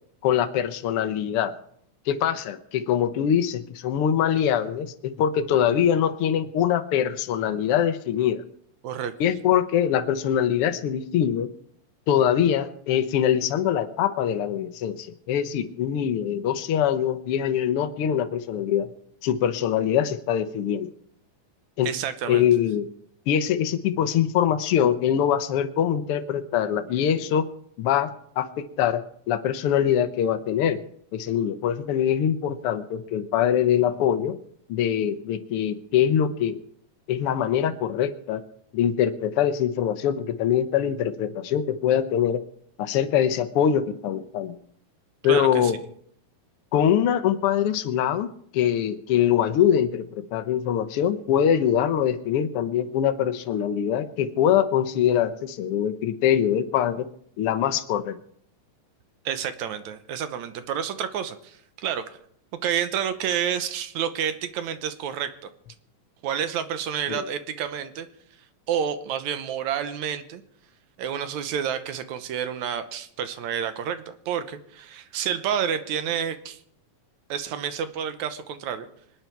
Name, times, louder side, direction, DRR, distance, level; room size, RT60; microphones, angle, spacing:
voice 1, 0.2-1.5 2.1-8.4 9.2-11.5 12.1-18.9 19.2-20.9 21.8-21.9 22.3-22.9 23.3-27.5 27.8-28.1 28.4-29.0 29.3-30.8 31.1-34.4 34.7-36.6 37.1-38.4 38.7-42.4 42.8-44.5 45.2-45.8 46.7-57.1 57.4-58.2 67.1-67.2, left 9 dB, 80° left, 9 dB, 1.3 m, -23 dB
voice 2, 21.8-22.5 45.3-45.7 59.3-62.2 62.6-65.5 66.2-68.1 68.7-70.4 71.0-76.6 77.3-78.9, right 8 dB, 70° right, 11 dB, 2.1 m, -29 dB
25.5 x 9.4 x 4.6 m, 0.66 s
omnidirectional pair, 3.8 m